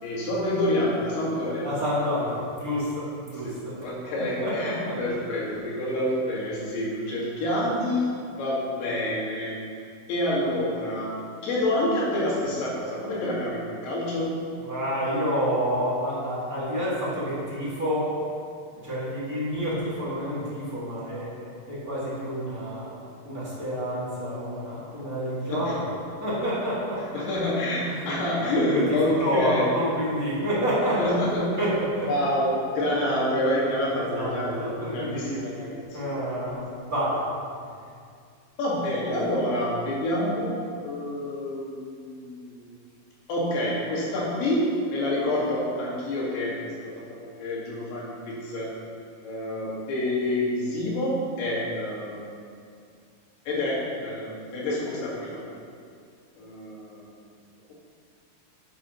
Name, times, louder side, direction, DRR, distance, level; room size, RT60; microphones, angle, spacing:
voice 1, 0.0-1.7 3.4-9.6 10.1-11.2 11.4-14.3 25.5-25.8 27.1-29.7 31.0-31.7 32.1-36.0 38.6-42.7 43.3-46.6 47.2-48.7 49.2-52.4 53.5-55.4 56.4-57.0, left 1 dB, 85° left, -6 dB, 4.1 m, -27 dB
voice 2, 1.6-3.7 4.2-5.0 14.6-18.2 18.8-22.9 23.2-25.8 26.2-27.2 27.8-28.1 28.5-31.1 31.6-32.1 33.9-35.6 35.9-37.2, equal, 30° right, -10 dB, 2.1 m, -29 dB
10.5 x 8.5 x 3.1 m, 2.3 s
omnidirectional pair, 4.5 m